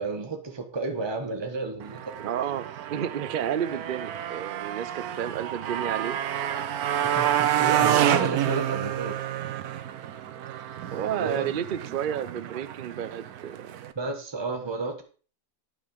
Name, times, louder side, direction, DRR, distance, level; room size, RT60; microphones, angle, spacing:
voice 1, 0.0-2.2 7.1-9.2 11.1-11.5 14.0-15.0, right 3 dB, 20° right, 4 dB, 1.2 m, -32 dB
Motorcycle, 1.8-13.9, right 11 dB, 90° right, 1.2 m, -29 dB
voice 2, 2.2-6.1 7.6-8.1 10.9-13.7, right 9 dB, 55° right, 13 dB, 0.6 m, -31 dB
9.9 x 6.3 x 5.3 m, 0.39 s
omnidirectional pair, 1.5 m